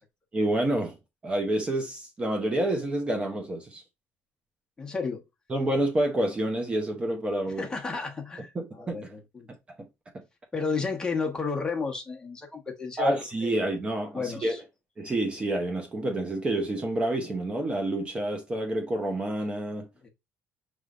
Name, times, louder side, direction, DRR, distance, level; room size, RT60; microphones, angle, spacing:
voice 1, 0.3-0.9 1.2-3.8 5.5-7.7 8.5-9.1 9.8-9.9 10.1-10.2 13.0-14.6 15.0-19.9, right 1 dB, 20° right, 0.8 m, -28 dB
voice 2, 4.8-5.2 7.6-9.5 10.5-13.6 14.1-14.6 20.0-20.1, left 4 dB, 15° left, 1.1 m, -32 dB
6.3 x 3.3 x 2.5 m
cardioid pair, 145°, 5 cm